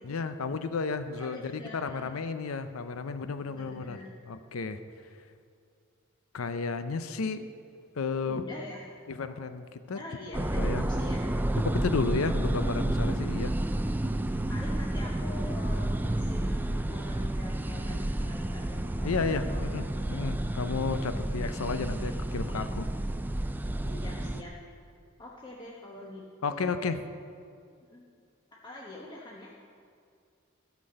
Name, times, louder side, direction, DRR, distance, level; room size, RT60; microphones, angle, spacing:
voice 1, 0.0-4.0 4.3-4.8 6.3-7.5 7.9-8.4 9.1-10.0 10.5-10.8 11.6-13.5 19.0-22.9 26.4-27.0, left 4 dB, 85° left, 10 dB, 0.6 m, -32 dB
voice 2, 1.2-2.1 3.5-4.1 8.2-8.8 9.9-11.4 14.5-19.6 23.8-24.5 25.2-26.2 26.5-26.9 27.9-28.1 28.6-29.5, left 1 dB, 20° left, -4 dB, 1.0 m, -44 dB
sound 1, 10.3-24.4, right 1 dB, 10° right, 0.3 m, -30 dB
13.5 x 6.1 x 7.7 m, 2.3 s
head